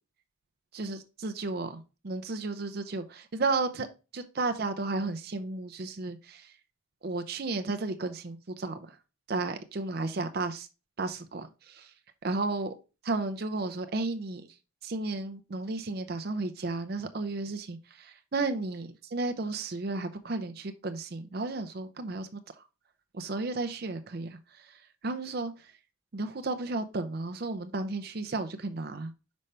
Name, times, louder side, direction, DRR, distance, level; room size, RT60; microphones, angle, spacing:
voice 1, 0.7-3.9 4.1-6.5 7.0-9.0 9.3-10.7 11.0-11.8 12.2-12.7 13.0-14.4 14.8-22.4 23.1-24.8 25.0-25.7 26.1-29.1, right 3 dB, 50° right, 0.5 m, -33 dB
5.5 x 5.2 x 3.3 m
head